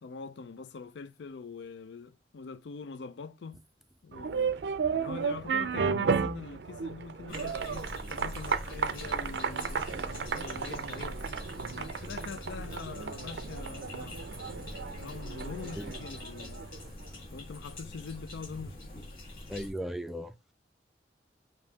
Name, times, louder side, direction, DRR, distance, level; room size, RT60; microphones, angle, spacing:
voice 1, 0.0-3.6 4.0-4.6 4.9-11.2 11.7-14.3 15.0-16.7 17.3-19.1, left 5 dB, 80° left, 0.4 m, -44 dB
sound 1, 4.1-16.9, right 5 dB, 70° right, 0.4 m, -34 dB
sound 2, 7.3-19.7, left 1 dB, 55° left, 1.6 m, -44 dB
voice 2, 19.5-20.5, equal, ahead, 0.3 m, -37 dB
5.2 x 2.7 x 2.8 m
head